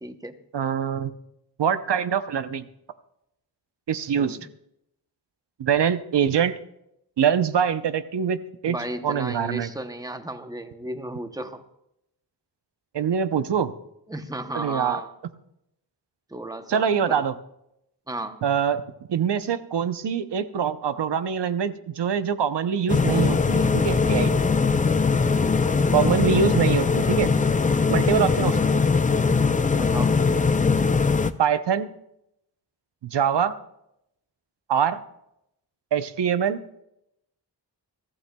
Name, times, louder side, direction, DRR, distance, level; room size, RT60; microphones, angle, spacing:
voice 1, 0.0-0.4 4.2-4.4 8.7-11.6 14.1-15.1 16.3-17.2 18.1-18.4 29.8-30.2, right 1 dB, 10° right, 8 dB, 0.8 m, -34 dB
voice 2, 0.5-1.1 1.6-2.7 3.9-4.4 5.6-6.6 7.2-8.4 8.6-8.8 9.0-9.7 12.9-13.7 14.5-15.0 16.7-17.3 18.4-18.8 19.1-24.5 25.9-27.3 27.9-28.6 31.4-31.9 33.0-33.5 34.7-35.0 35.9-36.6, right 8 dB, 75° right, 11 dB, 0.8 m, -24 dB
sound 1, 22.9-31.3, left 4 dB, 20° left, 0.3 m, -21 dB
23.0 x 14.5 x 2.3 m, 0.82 s
wide cardioid pair, 145°, 42 cm